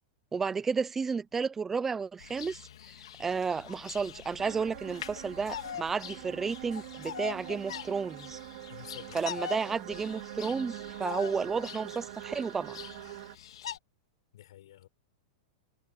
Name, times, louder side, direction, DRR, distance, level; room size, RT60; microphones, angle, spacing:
voice 1, 0.3-2.6 3.2-8.4 9.1-12.8, right 5 dB, 10° right, 0.8 m, -32 dB
Bird vocalization bird call bird song, 2.2-13.8, left 10 dB, 85° left, 3.1 m, -43 dB
sound 1, 4.4-13.4, right 17 dB, 55° right, 3.3 m, -44 dB
voice 2, 8.7-9.2 14.3-14.9, left 13 dB, 70° left, 7.1 m, -49 dB
supercardioid pair, 160°, 3 cm